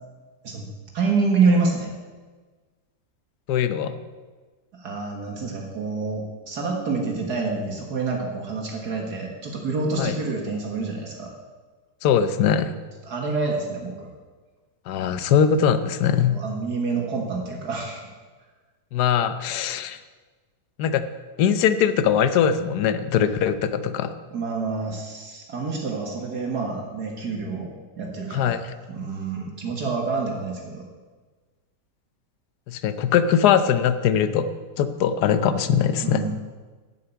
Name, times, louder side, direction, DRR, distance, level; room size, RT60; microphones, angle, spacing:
voice 1, 0.9-1.9 4.7-11.3 13.0-14.1 16.3-18.0 24.3-30.9 36.0-36.3, right 4 dB, 65° right, 0 dB, 2.0 m, -27 dB
voice 2, 3.5-3.9 10.0-10.1 12.0-12.7 14.9-16.4 18.9-20.0 20.8-21.0 21.4-24.1 28.3-28.6 32.7-34.5 34.8-36.2, left 8 dB, 70° left, 11 dB, 1.2 m, -21 dB
10.5 x 7.1 x 8.1 m, 1.4 s
omnidirectional pair, 1.9 m